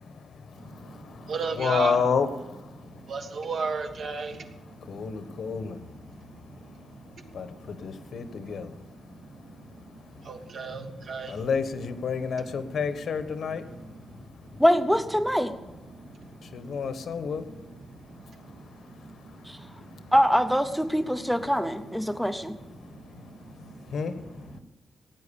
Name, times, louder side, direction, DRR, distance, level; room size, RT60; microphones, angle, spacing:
voice 1, 0.0-3.2 4.5-14.6 15.9-20.1 22.0-22.3 22.5-24.6, left 5 dB, 65° left, 10 dB, 1.1 m, -33 dB
voice 2, 0.6-2.0 2.8-4.5 6.6-6.8 7.2-7.6 10.2-11.4 14.1-14.6 15.9-16.8 18.1-20.1 22.0-22.1 22.8-23.0 23.3-23.9, right 4 dB, 60° right, 5 dB, 1.5 m, -36 dB
voice 3, 14.6-15.5 19.5-19.6 20.1-22.6, equal, ahead, 9 dB, 0.6 m, -23 dB
16.5 x 9.3 x 7.0 m, 1.0 s
wide cardioid pair, 145°, 0 cm